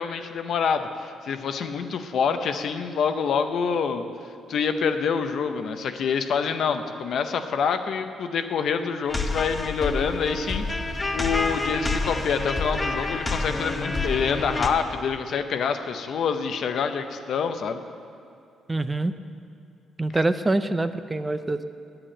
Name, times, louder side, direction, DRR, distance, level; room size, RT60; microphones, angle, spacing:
voice 1, 0.0-4.0 4.5-10.6 11.1-17.8, left 6 dB, 65° left, 8 dB, 0.7 m, -26 dB
sound 1, 9.1-14.7, left 3 dB, 20° left, 0.8 m, -28 dB
voice 2, 18.7-19.1 20.0-21.6, right 2 dB, 20° right, 11 dB, 0.5 m, -25 dB
8.4 x 7.8 x 8.7 m, 2.5 s
cardioid pair, 90°, 0 cm